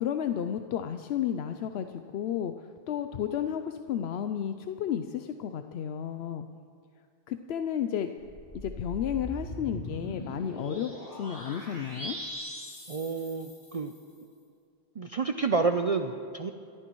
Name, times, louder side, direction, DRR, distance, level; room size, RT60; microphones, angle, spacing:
voice 1, 0.0-6.5 7.3-8.1 8.6-12.2, left 9 dB, 80° left, 7 dB, 0.8 m, -32 dB
sound 1, 8.2-14.0, equal, 50° left, 3.5 m, -41 dB
voice 2, 12.9-13.9 15.0-16.5, right 4 dB, 45° right, 7 dB, 0.5 m, -29 dB
27.5 x 14.0 x 3.1 m, 2.4 s
omnidirectional pair, 1.1 m